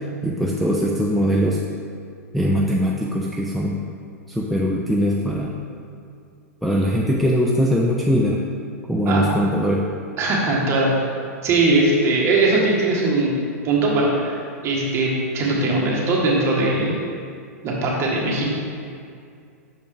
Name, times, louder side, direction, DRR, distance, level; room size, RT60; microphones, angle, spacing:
voice 1, 0.2-1.6 2.3-3.8 4.3-5.6 6.6-8.4 8.9-9.9, equal, ahead, -3 dB, 0.4 m, -21 dB
voice 2, 10.2-11.1 11.4-13.3 13.6-17.0 17.6-18.5, right 2 dB, 30° right, -3 dB, 1.4 m, -20 dB
6.2 x 5.0 x 3.5 m, 2.3 s
hypercardioid pair, 105°, 9 cm